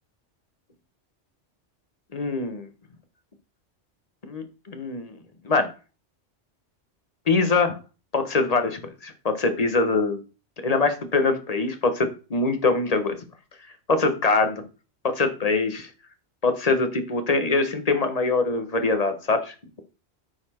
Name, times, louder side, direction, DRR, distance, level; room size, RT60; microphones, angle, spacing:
voice 1, 2.1-2.7 4.2-5.1 5.4-5.7 7.3-7.8 8.1-10.2 10.6-13.2 13.9-14.6 15.0-15.9 16.4-19.5, left 3 dB, 35° left, 8 dB, 1.1 m, -23 dB
9.8 x 4.3 x 4.2 m, 0.33 s
omnidirectional pair, 1.2 m